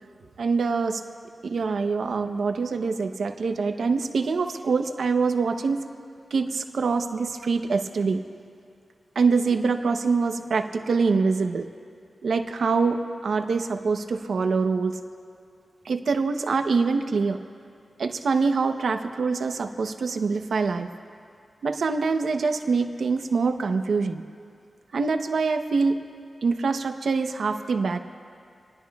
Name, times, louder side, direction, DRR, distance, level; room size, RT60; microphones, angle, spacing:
voice 1, 0.4-1.0 1.4-5.8 6.3-8.2 9.1-11.7 12.2-15.0 15.8-17.4 18.0-20.9 21.6-24.2 24.9-26.0 26.4-28.0, right 4 dB, 75° right, 6 dB, 0.8 m, -24 dB
27.0 x 19.5 x 2.4 m, 2.4 s
wide cardioid pair, 140°, 0 cm